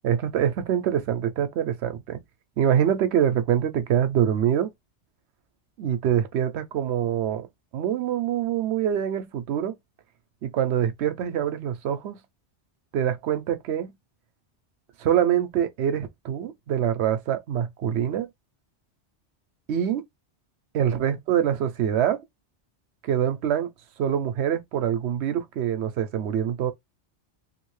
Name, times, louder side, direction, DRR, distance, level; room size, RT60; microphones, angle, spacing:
voice 1, 0.0-2.2 2.6-4.7 5.8-7.5 7.7-9.7 10.4-12.2 12.9-13.9 15.0-18.3 19.7-20.0 20.7-22.2 23.0-23.7 24.0-26.7, right 9 dB, 75° right, 0.8 m, -25 dB
3.2 x 2.5 x 3.1 m
omnidirectional pair, 1.2 m